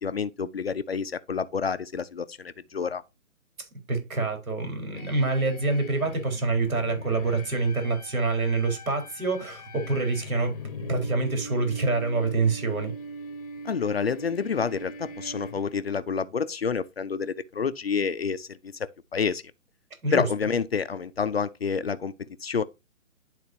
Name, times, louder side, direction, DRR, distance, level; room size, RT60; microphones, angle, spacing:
voice 1, 0.0-3.0 13.6-19.4 20.1-22.6, left 6 dB, 45° left, 0.5 m, -29 dB
voice 2, 3.6-10.6 10.9-12.9 20.0-20.2, right 3 dB, 75° right, 4.2 m, -26 dB
sound 1, 4.9-16.0, left 1 dB, 25° left, 0.9 m, -41 dB
11.5 x 4.1 x 2.7 m
hypercardioid pair, 165°, 42 cm